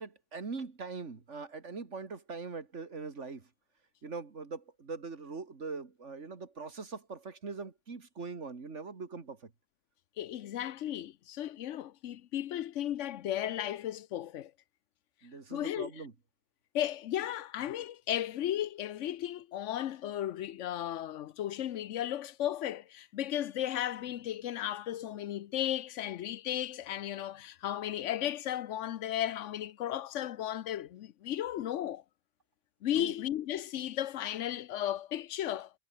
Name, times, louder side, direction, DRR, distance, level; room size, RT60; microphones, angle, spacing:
voice 1, 0.0-3.5 4.0-9.5 15.2-16.1 32.9-33.1, right 4 dB, 85° right, 2.6 m, -42 dB
voice 2, 10.2-14.5 15.5-15.9 16.7-32.0 32.8-35.7, left 11 dB, 85° left, 1.0 m, -35 dB
omnidirectional pair, 1.2 m